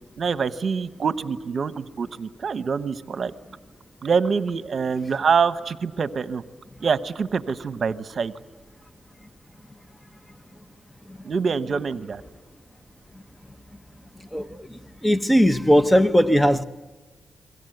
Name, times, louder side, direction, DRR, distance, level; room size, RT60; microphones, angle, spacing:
voice 1, 0.2-3.3 4.0-6.4 6.8-8.3 11.2-12.2, right 5 dB, 60° right, 1.0 m, -25 dB
voice 2, 15.0-16.6, equal, 10° left, 0.9 m, -18 dB
29.0 x 22.5 x 7.9 m
cardioid pair, 70°, 0 cm